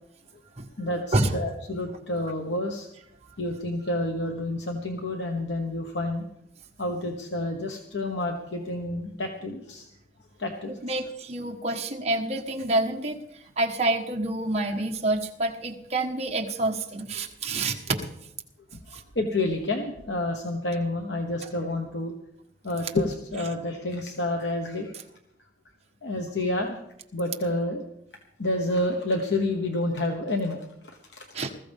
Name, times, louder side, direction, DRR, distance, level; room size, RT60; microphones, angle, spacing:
voice 1, 0.8-2.9 3.4-6.2 6.8-9.9 10.4-11.0 11.7-11.8 14.6-14.7 18.9-22.1 22.6-24.9 26.0-26.8 27.1-27.8 28.4-31.3, left 1 dB, 85° left, 3 dB, 1.2 m, -29 dB
voice 2, 10.8-13.2 13.6-18.1 18.9-19.0 31.3-31.5, right 2 dB, 40° right, 1 dB, 1.4 m, -27 dB
20.5 x 14.5 x 3.6 m, 0.79 s
head